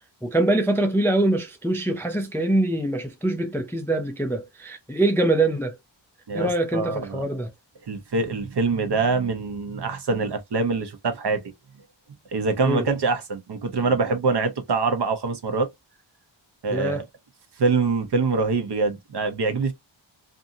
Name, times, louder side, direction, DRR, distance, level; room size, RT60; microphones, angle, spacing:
voice 1, 0.2-5.8 6.3-7.5 12.6-12.8 16.7-17.0, right 1 dB, 5° left, 0.3 m, -24 dB
voice 2, 6.3-7.2 7.8-11.4 12.3-15.7 16.6-17.0 17.6-19.7, right 4 dB, 55° right, 0.8 m, -24 dB
2.6 x 2.5 x 2.6 m
wide cardioid pair, 105°, 48 cm